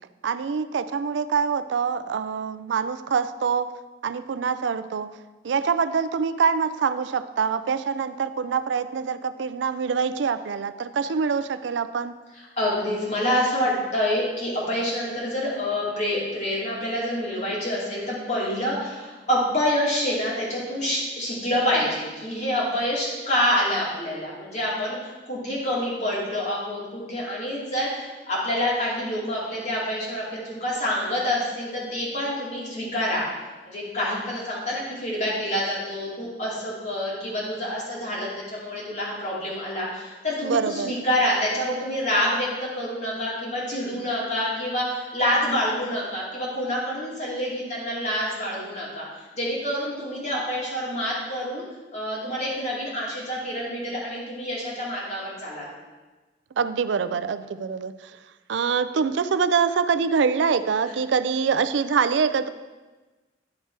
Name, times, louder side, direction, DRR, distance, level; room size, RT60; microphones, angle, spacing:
voice 1, 0.2-3.7 4.0-5.1 5.4-12.1 40.4-40.9 56.6-57.9 58.5-62.5, right 6 dB, 85° right, 12 dB, 0.4 m, -25 dB
voice 2, 12.3-33.3 33.6-51.6 51.9-55.7 60.9-61.0, left 1 dB, 40° left, -5 dB, 2.5 m, -27 dB
10.5 x 4.4 x 4.6 m, 1.2 s
head